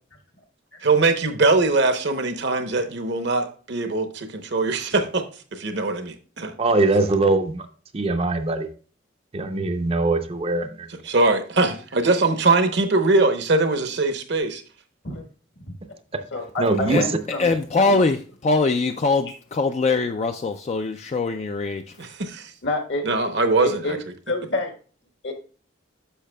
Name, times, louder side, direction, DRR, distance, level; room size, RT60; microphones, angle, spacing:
voice 1, 0.8-5.2 5.5-6.5 11.0-14.6 22.0-22.5 23.0-24.0, right 3 dB, 60° right, 0.8 m, -21 dB
voice 2, 6.6-7.7 7.9-8.7 9.3-10.9 16.1-16.2 16.6-17.1, right 2 dB, 30° right, 0.5 m, -22 dB
voice 3, 16.3-17.5 17.8-18.0 22.6-23.3 23.6-24.0 24.3-24.7 25.2-25.3, left 2 dB, 70° left, 1.3 m, -28 dB
voice 4, 17.4-21.8, left 3 dB, 35° left, 0.3 m, -22 dB
10.0 x 6.6 x 2.2 m
head